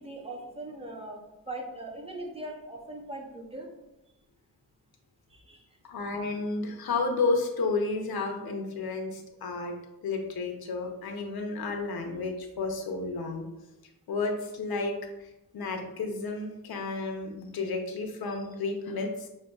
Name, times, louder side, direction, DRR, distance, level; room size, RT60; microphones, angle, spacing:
voice 1, 0.0-3.7 5.3-5.8, right 1 dB, 15° right, 1 dB, 0.7 m, -40 dB
voice 2, 5.9-9.7 10.0-13.4 14.1-19.3, left 3 dB, 80° left, 3 dB, 0.7 m, -32 dB
6.3 x 2.2 x 2.3 m, 0.93 s
wide cardioid pair, 100°, 36 cm